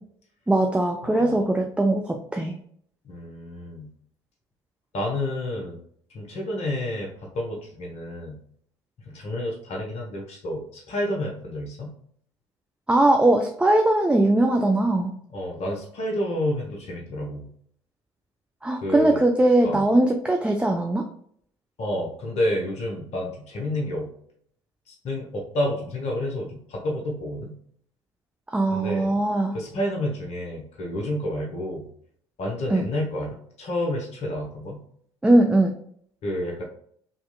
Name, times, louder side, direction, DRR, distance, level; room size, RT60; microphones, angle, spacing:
voice 1, 0.5-2.5 12.9-15.1 18.6-21.0 28.5-29.6 32.7-32.8 35.2-35.7, right 1 dB, 5° right, 3 dB, 0.4 m, -20 dB
voice 2, 1.0-1.6 3.0-3.9 4.9-5.8 6.1-8.4 9.1-11.9 15.3-17.5 18.8-19.2 19.6-19.9 21.8-24.1 24.9-27.5 28.7-29.1 29.5-31.9 32.4-34.8 36.2-36.6, left 1 dB, 50° left, -1 dB, 1.1 m, -30 dB
4.1 x 2.9 x 2.3 m, 0.63 s
figure-of-eight pair, 55°, 14 cm